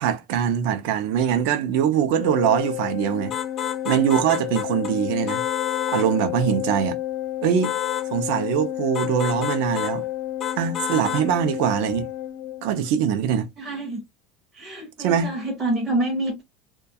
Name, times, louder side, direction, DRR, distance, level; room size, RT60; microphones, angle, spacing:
voice 1, 0.0-3.3 3.8-5.4 5.9-7.0 7.4-7.8 8.1-10.0 10.6-12.1 12.6-13.5 15.0-15.3, right 9 dB, 60° right, 0.5 m, -22 dB
Organ, 2.2-12.9, left 13 dB, 75° left, 0.6 m, -30 dB
sound 1, 3.3-4.9 5.3-6.1 7.6-8.1 8.9-10.0 10.4-11.3, left 10 dB, 25° left, 0.4 m, -30 dB
voice 2, 13.6-14.0 14.5-16.4, right 2 dB, 15° right, 0.6 m, -27 dB
2.3 x 2.2 x 2.5 m
cardioid pair, 170°, 0 cm